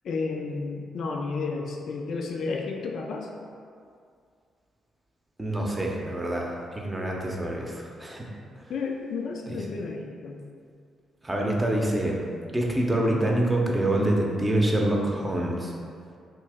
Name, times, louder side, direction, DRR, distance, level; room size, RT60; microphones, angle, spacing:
voice 1, 0.0-3.3 8.7-10.4, left 4 dB, 60° left, 1 dB, 0.3 m, -32 dB
voice 2, 5.4-8.3 9.5-9.6 11.2-12.3 12.5-15.7, right 1 dB, 20° right, -1 dB, 0.7 m, -26 dB
2.9 x 2.7 x 3.5 m, 2.3 s
hypercardioid pair, 40°, 0 cm